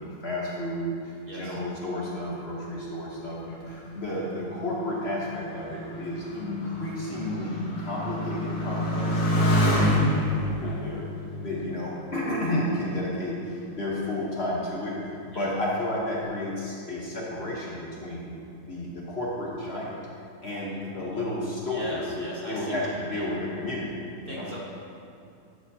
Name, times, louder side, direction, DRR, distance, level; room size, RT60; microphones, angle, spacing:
voice 1, 0.0-11.0 11.4-18.3 18.6-20.0 20.4-24.5, left 1 dB, 45° left, -5 dB, 1.2 m, -32 dB
voice 2, 1.3-1.6 10.6-10.8 15.3-15.5 21.7-23.3 24.2-24.6, equal, 35° right, -5 dB, 1.6 m, -38 dB
Motorcycle, 3.7-12.7 13.4-14.0, equal, 80° left, 1.7 m, -28 dB
12.5 x 7.0 x 2.8 m, 2.5 s
omnidirectional pair, 1.6 m